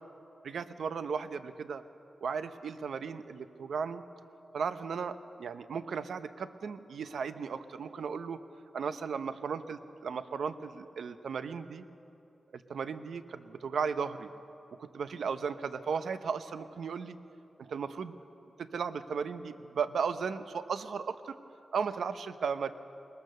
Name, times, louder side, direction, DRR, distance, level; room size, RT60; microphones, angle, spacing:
voice 1, 0.4-1.8 2.2-4.0 4.5-8.4 8.7-11.8 12.5-14.3 14.8-17.2 17.6-18.2 18.6-21.4 21.7-22.7, right 6 dB, 90° right, 11 dB, 0.7 m, -35 dB
21.5 x 21.0 x 6.7 m, 2.8 s
wide cardioid pair, 130°, 0 cm